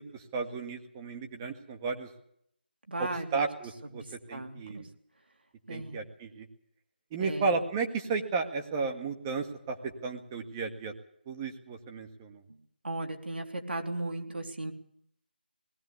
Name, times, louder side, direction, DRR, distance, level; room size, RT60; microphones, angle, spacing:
voice 1, 0.0-2.1 3.0-4.0 4.3-4.8 5.7-6.5 7.1-10.9 11.3-12.4, right 4 dB, 15° right, 5 dB, 1.8 m, -33 dB
voice 2, 2.9-3.5 3.9-4.9 5.7-6.0 7.2-7.6 12.5-12.6 12.8-14.7, right 2 dB, 75° right, 4 dB, 3.4 m, -36 dB
19.5 x 15.5 x 8.4 m, 0.69 s
figure-of-eight pair, 165°, 6 cm